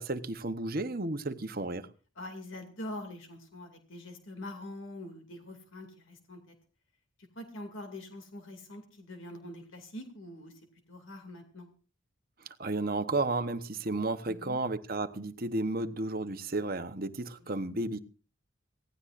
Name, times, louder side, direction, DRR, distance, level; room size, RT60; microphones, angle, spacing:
voice 1, 0.0-1.9 12.6-18.0, right 2 dB, 45° right, 1.0 m, -33 dB
voice 2, 2.2-6.5 7.4-10.5 10.9-11.7 14.3-14.6 17.4-17.5, left 1 dB, 70° left, 2.5 m, -44 dB
25.5 x 17.0 x 2.5 m
head